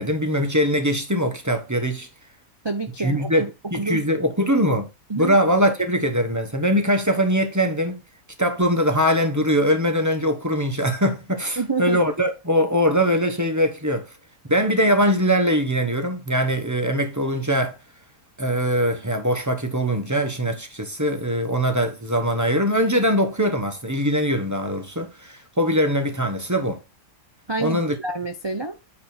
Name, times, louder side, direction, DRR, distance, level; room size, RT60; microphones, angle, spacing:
voice 1, 0.0-2.1 3.0-3.4 3.7-4.9 5.2-8.0 8.4-14.1 14.5-17.8 18.4-26.8 27.6-27.9, equal, 15° right, 0.9 m, -22 dB
voice 2, 2.6-3.5 3.8-4.0 5.1-5.4 11.6-12.0 27.5-28.8, right 3 dB, 35° right, 0.4 m, -27 dB
9.2 x 4.3 x 4.4 m
omnidirectional pair, 1.8 m